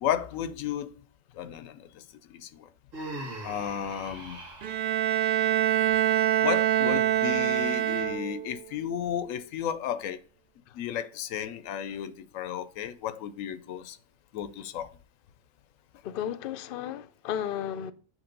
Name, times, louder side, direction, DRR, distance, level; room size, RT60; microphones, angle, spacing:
voice 1, 0.0-0.9 1.3-2.0 2.3-2.7 3.4-4.4 6.4-10.2 10.7-14.0 14.3-14.9, left 9 dB, 85° left, 1.0 m, -33 dB
Human voice, 2.9-4.8, right 1 dB, 85° right, 2.1 m, -40 dB
Bowed string instrument, 4.6-8.6, right 12 dB, 60° right, 0.5 m, -25 dB
voice 2, 16.0-17.9, left 9 dB, 65° left, 0.6 m, -33 dB
8.1 x 3.1 x 5.2 m
omnidirectional pair, 1.3 m